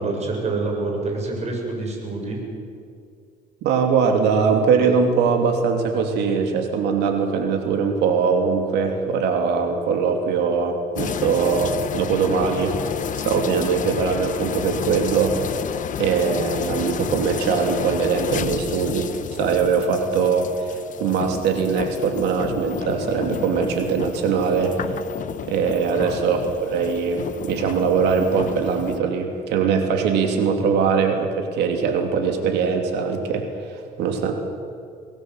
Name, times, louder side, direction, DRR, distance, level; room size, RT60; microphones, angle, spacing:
voice 1, 0.0-2.4 20.0-20.1 25.9-26.2, right 3 dB, 40° right, 1 dB, 7.2 m, -27 dB
voice 2, 3.6-12.8 13.2-15.4 16.0-25.0 25.5-33.5 34.0-34.3, right 5 dB, 85° right, 4 dB, 3.0 m, -21 dB
sound 1, 11.0-29.0, left 9 dB, 50° left, 1.0 m, -31 dB
24.0 x 18.5 x 8.1 m, 2.4 s
cardioid pair, 110°, 17 cm